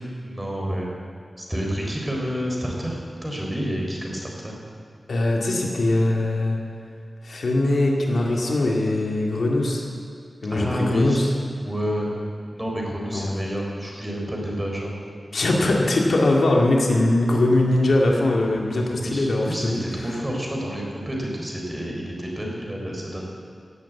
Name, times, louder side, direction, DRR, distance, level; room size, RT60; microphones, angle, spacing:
voice 1, 0.2-0.9 1.4-4.6 10.5-11.2 11.6-12.1 12.5-14.9 19.0-23.3, equal, 15° right, -1 dB, 4.0 m, -29 dB
voice 2, 5.1-6.6 7.2-9.8 10.4-11.3 13.1-13.3 15.3-20.2, left 2 dB, 80° left, -1 dB, 2.1 m, -21 dB
16.0 x 8.4 x 8.2 m, 2.4 s
wide cardioid pair, 75°, 0 cm